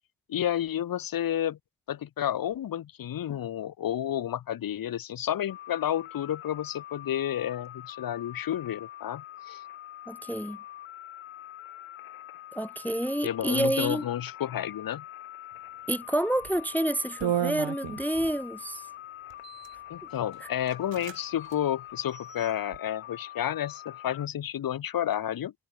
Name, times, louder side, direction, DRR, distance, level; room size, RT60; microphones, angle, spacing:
voice 1, 0.3-1.6 1.9-9.6 13.2-15.0 19.9-25.5, left 11 dB, 45° left, 0.9 m, -31 dB
sound 1, 5.5-24.3, left 13 dB, 80° left, 2.0 m, -44 dB
voice 2, 10.1-10.6 12.5-14.0 15.9-18.8, right 1 dB, 5° left, 0.5 m, -28 dB
sound 2, 16.4-16.6 17.2-18.3 19.3-19.8 20.3-20.4 20.7-21.2 21.4-21.6 22.1-22.8, right 11 dB, 65° right, 2.5 m, -33 dB
cardioid pair, 130°, 47 cm